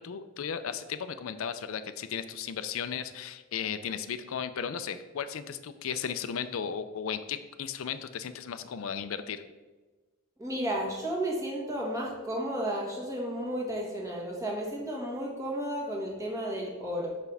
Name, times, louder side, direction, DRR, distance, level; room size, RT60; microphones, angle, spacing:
voice 1, 0.0-9.4, left 7 dB, 75° left, 11 dB, 0.5 m, -35 dB
voice 2, 10.4-17.1, right 1 dB, 15° right, -3 dB, 1.5 m, -33 dB
6.9 x 5.9 x 3.4 m, 1.2 s
head